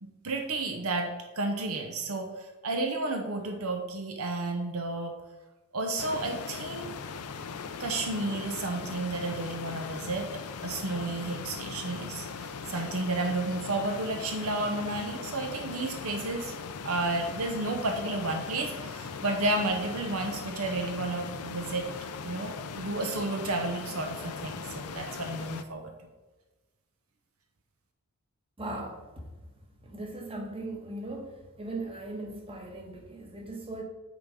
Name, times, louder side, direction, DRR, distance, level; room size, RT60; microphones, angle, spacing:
voice 1, 0.0-5.1 5.7-6.9 7.8-10.3 10.6-16.5 16.8-21.9 22.2-26.1, right 2 dB, 70° right, 4 dB, 0.8 m, -32 dB
sound 1, 6.0-25.6, left 5 dB, 85° left, 0.6 m, -39 dB
voice 2, 28.6-29.1 29.8-33.8, right 2 dB, 25° right, 1 dB, 1.3 m, -38 dB
9.2 x 3.9 x 5.0 m, 1.2 s
head